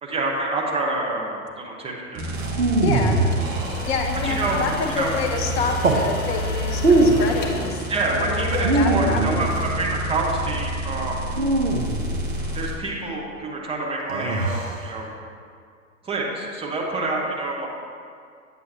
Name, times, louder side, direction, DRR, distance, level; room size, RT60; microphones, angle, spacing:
voice 1, 0.0-2.4 4.2-5.1 7.9-11.2 12.5-14.6 14.8-15.1 16.0-17.7, right 2 dB, 15° right, -2 dB, 1.2 m, -27 dB
sound 1, 2.1-12.7, equal, 35° right, 1.6 m, -29 dB
sound 2, 2.3-4.3 5.6-6.1 6.7-7.4 8.5-9.8 11.3-12.5 14.1-14.9, right 2 dB, 70° right, 1.0 m, -22 dB
voice 2, 2.8-3.2 3.9-7.8 8.1-9.4, left 4 dB, 50° left, 4 dB, 1.1 m, -27 dB
sound 3, 3.1-8.8, left 3 dB, 20° left, 0.8 m, -38 dB
9.1 x 7.7 x 2.9 m, 2.2 s
figure-of-eight pair, 95°, 42 cm